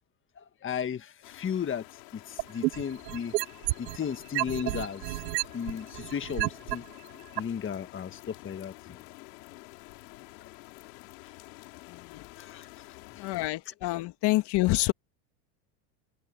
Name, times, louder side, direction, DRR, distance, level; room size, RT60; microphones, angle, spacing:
voice 1, 0.4-1.8 2.1-3.3 3.9-5.2 5.5-6.8 7.4-9.0 12.4-12.7, left 7 dB, 25° left, 1.6 m, -35 dB
sound 1, 1.2-13.5, left 24 dB, 75° left, 5.1 m, -49 dB
sound 2, 2.4-4.0 4.4-6.8 7.4-7.5, right 22 dB, 80° right, 0.9 m, -30 dB
voice 2, 11.9-12.3 13.2-14.9, left 19 dB, 50° left, 1.9 m, -27 dB
supercardioid pair, 110°, 50 cm